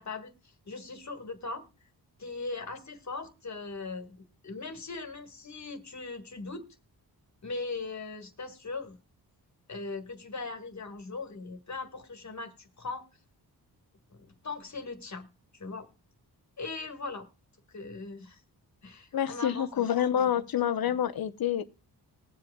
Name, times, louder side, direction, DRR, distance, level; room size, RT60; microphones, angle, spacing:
voice 1, 0.0-1.6 2.2-4.2 4.4-6.7 7.4-9.0 9.7-13.0 14.1-15.3 15.5-15.9 16.6-17.3 17.7-18.4 18.8-20.0, left 3 dB, 45° left, 1.7 m, -39 dB
voice 2, 19.1-21.6, left 10 dB, 60° left, 0.8 m, -27 dB
20.5 x 7.8 x 2.2 m
cardioid pair, 90°, 40 cm